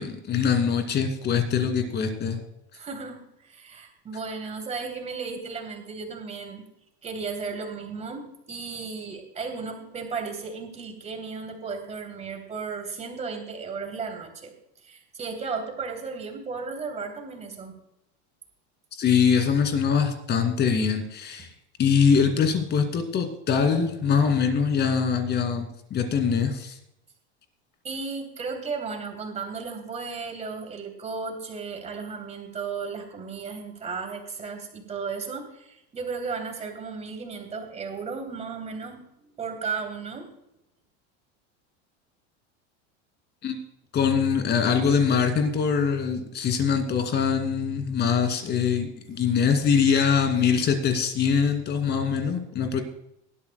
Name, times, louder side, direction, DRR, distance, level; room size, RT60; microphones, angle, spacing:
voice 1, 0.0-2.4 19.0-21.5 21.8-26.8 43.4-43.6 43.9-52.8, left 6 dB, 30° left, 6 dB, 2.5 m, -23 dB
voice 2, 2.8-6.6 7.0-14.5 14.8-17.8 27.8-39.0 39.4-40.3 49.1-49.2, right 5 dB, 20° right, 3 dB, 3.0 m, -35 dB
19.0 x 13.0 x 2.2 m, 0.83 s
supercardioid pair, 140°, 33 cm